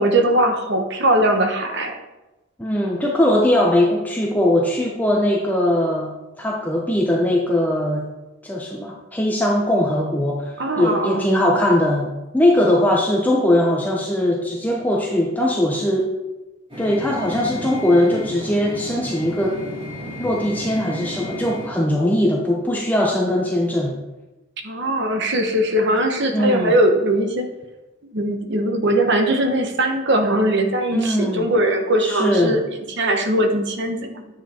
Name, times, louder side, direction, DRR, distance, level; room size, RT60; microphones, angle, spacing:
voice 1, 0.0-2.0 10.6-11.2 24.6-27.5 28.1-32.6 33.0-34.2, right 1 dB, 55° right, 5 dB, 1.2 m, -20 dB
voice 2, 2.6-8.0 8.4-12.1 12.3-16.1 16.8-19.6 20.2-24.0 26.3-26.7 30.9-31.5 32.0-32.6, left 1 dB, 10° left, -1 dB, 0.9 m, -20 dB
sound 1, 16.7-21.7, left 1 dB, 25° right, 3.9 m, -33 dB
9.9 x 7.7 x 4.4 m, 1.1 s
head